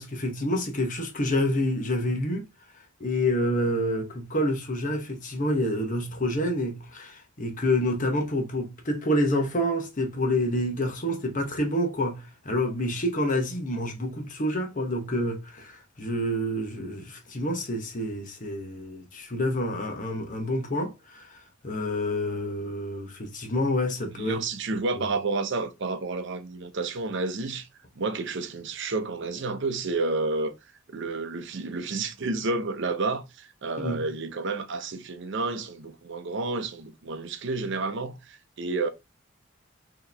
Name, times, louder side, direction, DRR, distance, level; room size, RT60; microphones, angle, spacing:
voice 1, 0.0-2.4 3.0-21.3 21.6-24.5 24.7-24.8 33.8-34.0, left 1 dB, 40° left, 1.0 m, -28 dB
voice 2, 24.2-27.7 28.0-30.5 30.9-38.9, right 3 dB, 65° right, 0.7 m, -30 dB
4.6 x 3.0 x 3.3 m
head